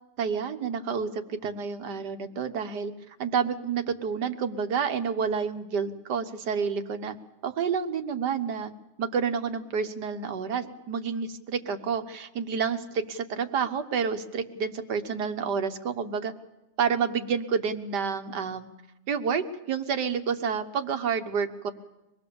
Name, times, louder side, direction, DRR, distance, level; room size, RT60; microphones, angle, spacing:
voice 1, 0.2-7.2 7.4-8.7 9.0-16.3 16.8-18.7 19.1-21.7, right 6 dB, 80° right, 8 dB, 1.8 m, -29 dB
24.5 x 20.0 x 7.0 m, 0.98 s
omnidirectional pair, 1.8 m